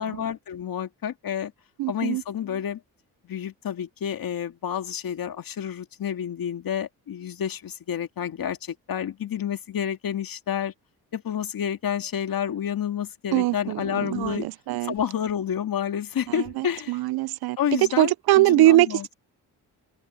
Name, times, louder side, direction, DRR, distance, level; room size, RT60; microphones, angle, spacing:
voice 1, 0.0-1.5 1.9-2.8 3.2-10.7 11.1-14.5 14.8-17.0 17.6-19.1, left 9 dB, 60° left, 2.2 m, -29 dB
voice 2, 1.8-2.2 13.3-14.9 16.6-17.6 18.0-19.1, right 16 dB, 75° right, 0.5 m, -22 dB
open air
cardioid pair, 75°, 39 cm